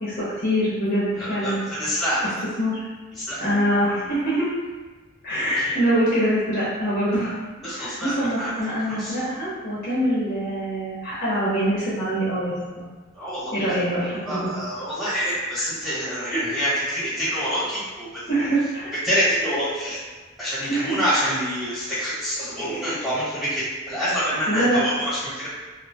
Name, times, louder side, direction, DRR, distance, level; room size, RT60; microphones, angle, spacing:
voice 1, 0.0-1.6 2.6-2.8 3.4-4.5 5.2-7.4 7.7-12.9 13.5-14.5 18.3-18.9 20.7-21.2 24.5-24.8, equal, 45° left, -9 dB, 0.7 m, -24 dB
voice 2, 1.2-2.3 3.2-3.4 5.5-5.7 7.6-8.5 8.9-9.1 13.1-13.5 14.3-18.4 19.0-20.0 20.4-25.5, equal, ahead, -12 dB, 1.2 m, -26 dB
2.6 x 2.1 x 2.6 m, 1.3 s
head